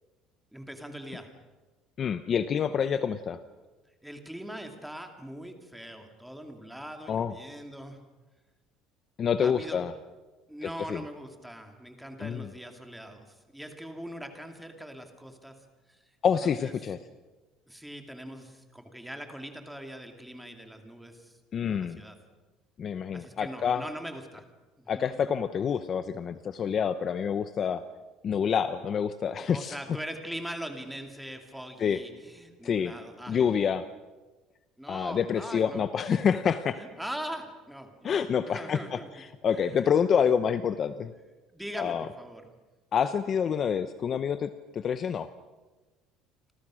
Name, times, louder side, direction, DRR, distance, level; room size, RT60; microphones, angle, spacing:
voice 1, 0.5-1.4 4.0-8.0 9.4-9.9 10.5-16.1 16.4-16.7 17.7-21.4 21.6-22.2 23.1-24.5 24.8-25.2 29.5-33.6 34.8-35.9 36.7-39.1 39.5-39.9 41.5-42.4, right 1 dB, ahead, 5 dB, 2.5 m, -42 dB
voice 2, 2.0-3.4 7.1-7.3 9.2-9.9 10.9-11.0 12.2-12.5 16.2-17.0 21.5-22.0 22.8-23.8 24.9-27.8 28.2-29.8 31.8-32.0 32.6-32.9 33.3-33.8 34.9-36.8 38.0-38.8 39.4-41.1 41.8-42.1 42.9-45.3, left 7 dB, 30° left, 11 dB, 0.8 m, -27 dB
29.5 x 26.0 x 6.3 m, 1.2 s
cardioid pair, 170°, 0 cm